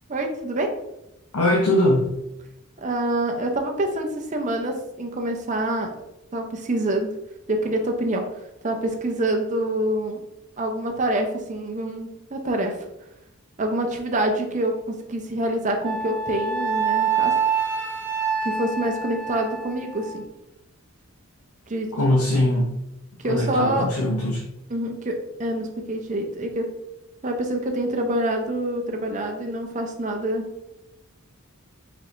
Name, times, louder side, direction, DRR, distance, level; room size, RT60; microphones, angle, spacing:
voice 1, 0.1-0.7 2.8-5.9 6.3-7.1 7.5-8.2 8.6-10.2 10.6-12.8 13.6-17.3 18.4-20.2 21.7-21.9 23.2-23.9 24.7-26.7 27.2-30.4, right 1 dB, 35° right, 3 dB, 0.6 m, -26 dB
voice 2, 1.3-2.1 21.9-22.8 23.2-24.5, left 1 dB, 85° left, -2 dB, 0.8 m, -21 dB
Wind instrument woodwind instrument, 15.8-20.2, right 6 dB, 20° left, 1.2 m, -26 dB
4.6 x 4.3 x 2.6 m, 0.89 s
head